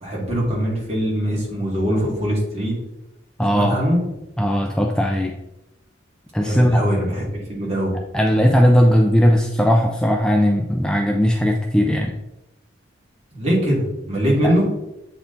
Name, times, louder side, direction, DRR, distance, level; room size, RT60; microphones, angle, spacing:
voice 1, 0.0-2.8 3.5-4.0 6.4-8.0 13.3-14.7, equal, 35° right, -4 dB, 2.3 m, -22 dB
voice 2, 3.4-3.8 4.4-5.3 6.3-6.9 8.1-12.1 14.4-14.5, equal, 5° left, 1 dB, 0.4 m, -18 dB
8.0 x 4.2 x 3.9 m, 0.93 s
head